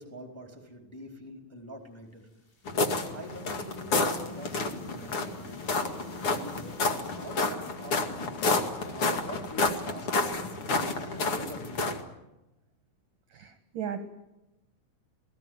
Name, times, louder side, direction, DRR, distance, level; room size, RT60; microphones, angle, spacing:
voice 1, 0.0-2.2 3.1-6.7 7.2-8.3 8.8-11.9, right 1 dB, 5° left, 3 dB, 3.2 m, -45 dB
sound 1, 2.0-7.6, left 3 dB, 75° left, 9.9 m, -60 dB
sound 2, 2.6-12.0, left 3 dB, 45° left, 1.9 m, -30 dB
voice 2, 13.3-14.0, right 9 dB, 60° right, 8 dB, 2.5 m, -36 dB
28.0 x 20.0 x 9.4 m, 0.97 s
omnidirectional pair, 5.7 m